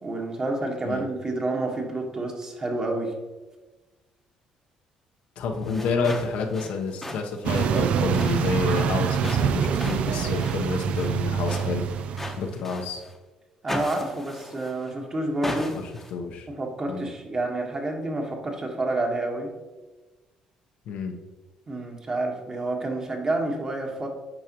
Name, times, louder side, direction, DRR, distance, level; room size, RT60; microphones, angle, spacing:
voice 1, 0.0-3.1 13.6-15.8 16.5-19.5 21.7-24.1, right 2 dB, 30° right, 2 dB, 1.3 m, -29 dB
voice 2, 5.4-11.8 12.4-13.0 15.7-16.5 16.9-17.1 20.9-21.1, left 4 dB, 75° left, 3 dB, 0.9 m, -29 dB
sound 1, 5.5-13.2 13.7-14.9 15.4-16.1, left 1 dB, 10° left, 0.9 m, -38 dB
sound 2, 7.4-12.5, right 8 dB, 60° right, 0.4 m, -25 dB
9.0 x 4.9 x 3.0 m, 1.2 s
cardioid pair, 100°, 2 cm